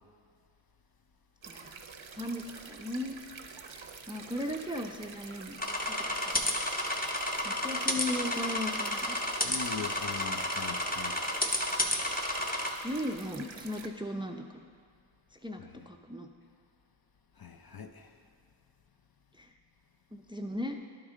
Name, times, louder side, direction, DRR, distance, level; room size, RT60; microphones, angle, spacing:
sound 1, 1.4-13.9, right 5 dB, 75° right, 0.6 m, -48 dB
voice 1, 1.5-1.8 2.1-3.2 3.7-5.6 5.8-5.9 6.2-6.4 7.4-9.2 12.8-14.7 15.4-16.3 19.4-19.5 20.1-20.8, left 1 dB, 10° right, 5 dB, 0.4 m, -37 dB
sound 2, 5.6-12.7, left 1 dB, 20° left, 0.7 m, -31 dB
voice 2, 9.4-11.2 15.6-15.9 17.4-18.2, left 6 dB, 50° left, 7 dB, 0.5 m, -42 dB
11.5 x 4.8 x 3.7 m, 2.2 s
wide cardioid pair, 40°, 47 cm